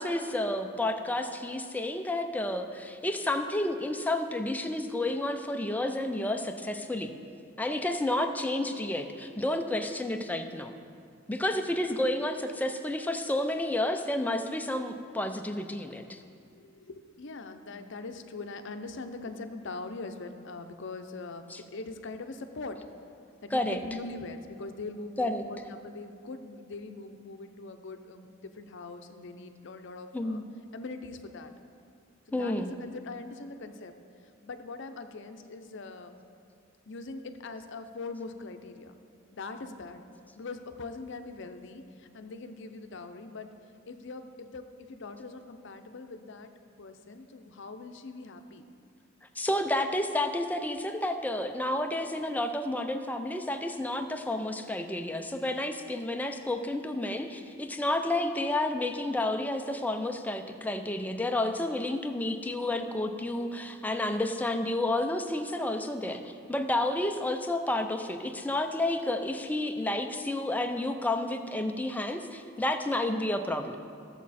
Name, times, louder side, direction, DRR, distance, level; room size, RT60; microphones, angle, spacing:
voice 1, 0.0-7.1 7.6-10.7 11.3-16.2 21.5-21.6 23.5-23.8 25.2-25.4 30.1-30.5 32.3-32.7 49.4-73.8, left 1 dB, 10° left, 6 dB, 0.5 m, -30 dB
voice 2, 16.6-22.8 23.4-30.4 30.7-31.5 32.3-33.9 34.4-36.1 36.9-39.0 39.3-40.0 40.3-43.5 43.9-46.5 46.8-48.7, left 3 dB, 65° left, 7 dB, 0.6 m, -42 dB
14.0 x 7.3 x 4.2 m, 2.4 s
head